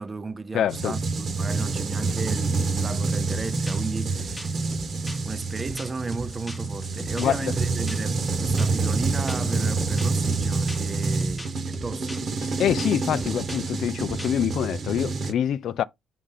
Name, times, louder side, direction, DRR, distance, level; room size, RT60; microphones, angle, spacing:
voice 1, 0.0-4.5 5.2-12.2, right 3 dB, 30° right, 0.6 m, -35 dB
voice 2, 0.5-0.9 7.2-7.5 12.4-15.8, left 10 dB, 70° left, 0.4 m, -25 dB
sound 1, 0.7-15.3, right 3 dB, 50° right, 1.1 m, -27 dB
sound 2, 3.3-14.5, left 1 dB, 10° left, 1.1 m, -40 dB
5.0 x 3.7 x 5.6 m
cardioid pair, 90°, 0 cm